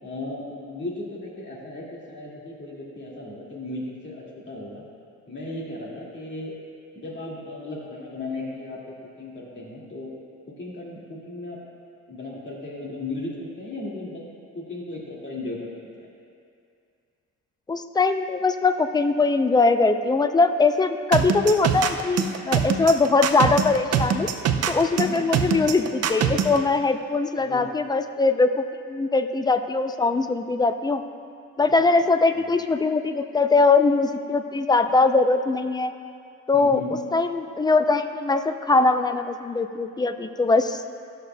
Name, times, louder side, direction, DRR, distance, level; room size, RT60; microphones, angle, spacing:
voice 1, 0.0-4.8 5.3-6.5 6.9-10.1 10.5-11.6 12.1-14.2 14.5-15.9 25.0-25.2 27.4-27.7 32.4-32.5 36.5-37.0, left 2 dB, 35° left, -4 dB, 2.1 m, -36 dB
voice 2, 17.7-24.3 24.7-28.5 28.9-31.0 31.6-35.9 36.5-36.8 37.1-40.8, left 3 dB, 15° left, 8 dB, 0.3 m, -21 dB
sound 1, 21.1-26.6, right 8 dB, 55° right, 0.6 m, -23 dB
14.0 x 6.6 x 2.2 m, 2.4 s
cardioid pair, 90°, 30 cm